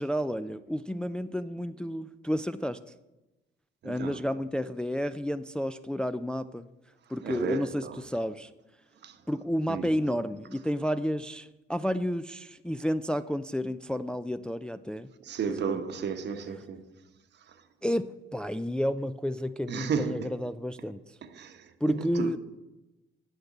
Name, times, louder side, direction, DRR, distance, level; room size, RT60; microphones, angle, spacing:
voice 1, 0.0-2.8 3.8-6.6 7.1-8.5 9.3-15.1 15.6-15.8 17.8-21.0 21.8-22.4, equal, 5° left, 0.3 m, -31 dB
voice 2, 3.8-4.3 7.2-8.0 9.0-9.2 9.7-9.9 15.2-16.9 17.5-17.6 19.7-20.4 21.2-22.4, right 6 dB, 60° right, 1.0 m, -34 dB
7.9 x 6.6 x 7.2 m
cardioid pair, 90°, 20 cm